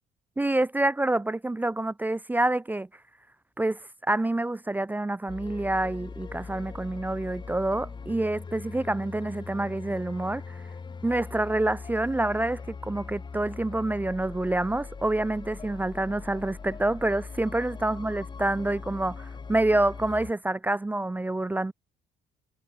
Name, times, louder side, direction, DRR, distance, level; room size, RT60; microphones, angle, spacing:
voice 1, 0.4-2.9 3.6-10.6 11.0-21.7, right 2 dB, 10° right, 0.7 m, -27 dB
sound 1, 5.3-20.3, left 5 dB, 25° left, 3.0 m, -41 dB
cardioid pair, 110°, 17 cm